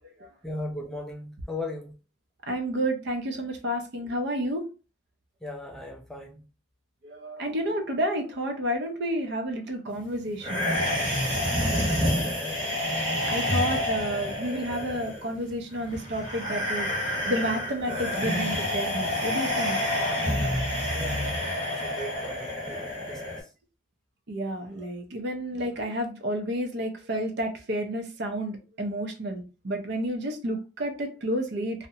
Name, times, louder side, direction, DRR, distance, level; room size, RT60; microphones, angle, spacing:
voice 1, 0.4-2.0 5.4-6.4 11.9-12.8 20.9-23.5 24.8-24.9, left 1 dB, ahead, 0 dB, 0.3 m, -38 dB
voice 2, 2.5-4.7 7.0-10.7 11.5-11.7 13.3-19.8 20.4-20.6 21.8-21.9 24.3-31.9, equal, 60° right, 4 dB, 0.5 m, -31 dB
sound 1, 10.4-23.4, left 1 dB, 25° right, 0.9 m, -28 dB
2.4 x 2.1 x 2.7 m, 0.32 s
head